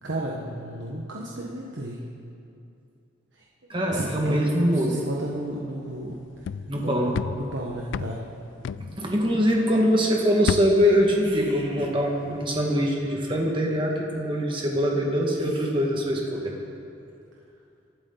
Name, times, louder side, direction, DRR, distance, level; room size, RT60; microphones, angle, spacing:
voice 1, 0.0-2.0 3.3-3.4 3.8-6.1 6.8-7.1 7.3-8.2, right 1 dB, 80° right, -3 dB, 1.4 m, -32 dB
voice 2, 3.7-5.0 6.7-7.1 8.8-16.5, equal, 25° right, -1 dB, 1.8 m, -23 dB
sound 1, 6.0-9.8 10.1-12.1 12.4-12.7, left 6 dB, 75° left, 0.3 m, -34 dB
23.5 x 12.5 x 4.1 m, 2.6 s
head